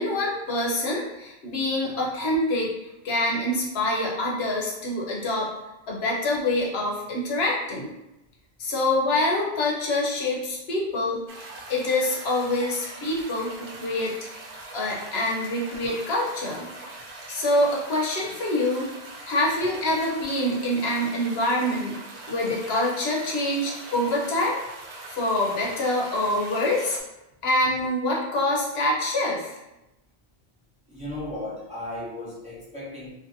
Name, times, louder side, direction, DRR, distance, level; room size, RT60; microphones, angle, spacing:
voice 1, 0.0-2.7 3.0-5.5 5.9-7.9 8.6-11.2 11.7-14.2 14.7-16.7 17.3-18.9 19.3-22.0 22.3-24.6 25.1-27.0 27.4-29.6, left 1 dB, 85° left, -3 dB, 0.9 m, -25 dB
sound 1, 11.3-27.0, right 2 dB, 90° right, 0.9 m, -42 dB
voice 2, 30.9-33.1, left 1 dB, 5° right, -9 dB, 0.8 m, -36 dB
2.6 x 2.5 x 2.5 m, 0.95 s
omnidirectional pair, 1.0 m